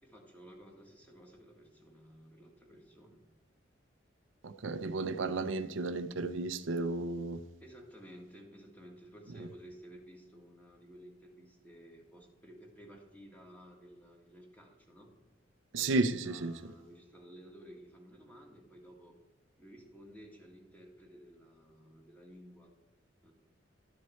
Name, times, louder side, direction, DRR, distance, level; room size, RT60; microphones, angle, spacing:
voice 1, 0.0-3.2 7.6-15.1 15.7-16.0 16.2-19.2 19.6-22.7 23.2-23.3, equal, 10° left, 1.7 m, -54 dB
voice 2, 4.4-7.4 9.4-9.5 15.7-16.7, right 3 dB, 75° right, 0.6 m, -33 dB
12.0 x 6.3 x 4.4 m
head